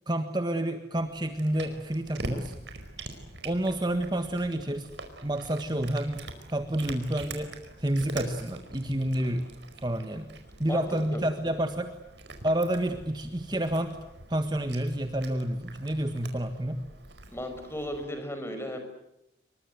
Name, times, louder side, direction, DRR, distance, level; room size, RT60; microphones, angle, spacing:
voice 1, 0.1-2.5 3.4-4.9 5.2-9.4 9.8-10.3 10.6-11.9 12.4-14.0 14.3-16.8, right 1 dB, 25° right, 7 dB, 1.5 m, -29 dB
Cat, 0.9-18.0, right 2 dB, 85° right, 4.8 m, -44 dB
voice 2, 17.3-18.8, equal, 15° left, 6 dB, 5.4 m, -35 dB
27.0 x 23.5 x 9.4 m, 0.86 s
head